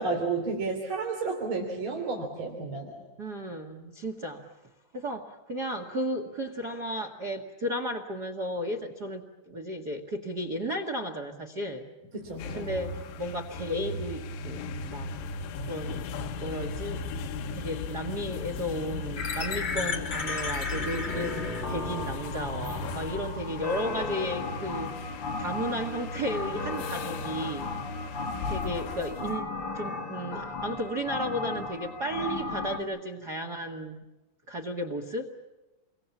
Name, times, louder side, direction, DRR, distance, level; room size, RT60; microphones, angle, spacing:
voice 1, 0.0-3.0 12.1-12.6, right 4 dB, 30° right, 0 dB, 3.5 m, -31 dB
voice 2, 3.2-4.4 4.9-11.8 12.5-15.1 15.6-15.9 16.4-17.0 17.5-24.9 25.4-27.7 28.5-29.5 29.7-34.0 34.5-35.3, equal, 75° right, 4 dB, 0.9 m, -34 dB
sound 1, 12.2-29.4, left 4 dB, 80° left, 3.4 m, -37 dB
sound 2, 19.2-32.8, left 3 dB, 30° left, 2.7 m, -35 dB
29.0 x 23.5 x 7.2 m, 1.1 s
omnidirectional pair, 5.0 m